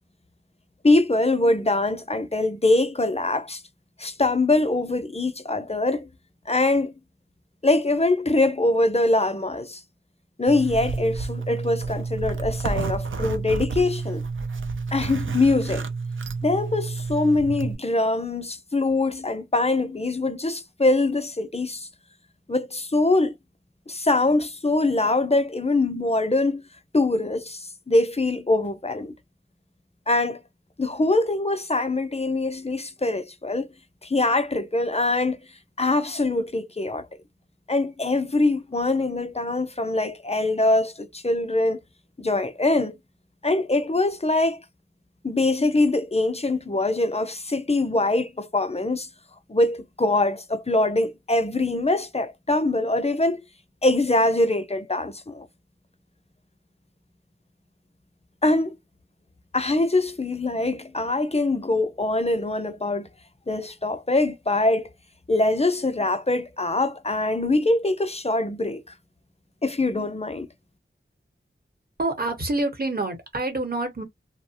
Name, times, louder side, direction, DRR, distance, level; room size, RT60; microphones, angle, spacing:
voice 1, 0.8-3.6 4.0-6.1 6.5-6.9 7.6-9.8 10.4-14.2 14.9-15.9 16.4-21.9 22.5-23.4 23.9-26.6 26.9-29.1 30.1-30.4 30.8-33.7 34.0-35.4 35.8-37.1 37.7-41.8 42.2-43.0 43.4-44.6 45.2-49.1 49.5-53.4 53.8-55.5 58.4-58.8 59.5-63.1 63.5-64.9 65.3-68.8 69.6-70.5, left 2 dB, 30° left, 0.5 m, -23 dB
Zipper (clothing), 10.5-17.7, right 4 dB, 70° right, 0.5 m, -30 dB
voice 2, 72.0-74.0, right 2 dB, 45° right, 1.0 m, -27 dB
2.7 x 2.1 x 2.7 m
wide cardioid pair, 55°, 21 cm